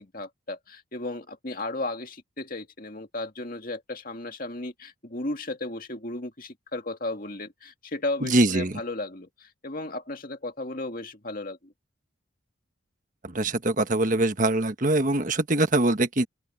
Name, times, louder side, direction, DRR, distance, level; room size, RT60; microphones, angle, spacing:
voice 1, 0.0-11.7, left 2 dB, 45° left, 2.2 m, -35 dB
voice 2, 8.2-8.8 13.2-16.3, right 2 dB, 40° right, 1.4 m, -23 dB
open air
head